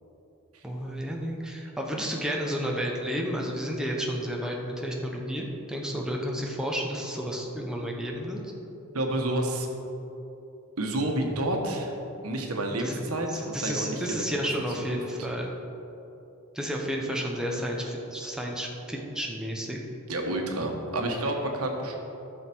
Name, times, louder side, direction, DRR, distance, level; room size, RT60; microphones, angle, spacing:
voice 1, 0.6-8.4 12.7-13.0 13.3-15.5 16.5-19.8, equal, 5° right, -1 dB, 1.0 m, -31 dB
voice 2, 8.9-9.7 10.8-11.9 12.2-14.2 14.9-15.0 20.1-22.0, right 1 dB, 90° right, 2 dB, 1.4 m, -29 dB
14.0 x 6.5 x 4.6 m, 3.0 s
head